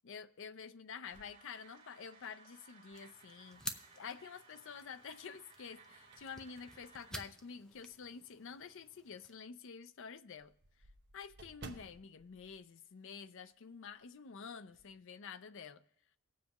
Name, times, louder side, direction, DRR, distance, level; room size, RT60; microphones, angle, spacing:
voice 1, 0.0-10.5 11.1-15.8, left 6 dB, 60° left, 0.5 m, -49 dB
sound 1, 1.0-7.1, right 4 dB, 30° right, 2.5 m, -61 dB
sound 2, 1.1-2.4 2.9-3.0 4.5-5.0 5.5-8.1 8.6-8.7 9.1-9.2 9.5-9.6 9.8-13.6 13.8-14.1 14.4-15.0, right 3 dB, 50° right, 0.9 m, -58 dB
sound 3, 2.9-9.3, equal, 5° left, 0.5 m, -51 dB
18.5 x 7.4 x 3.0 m
head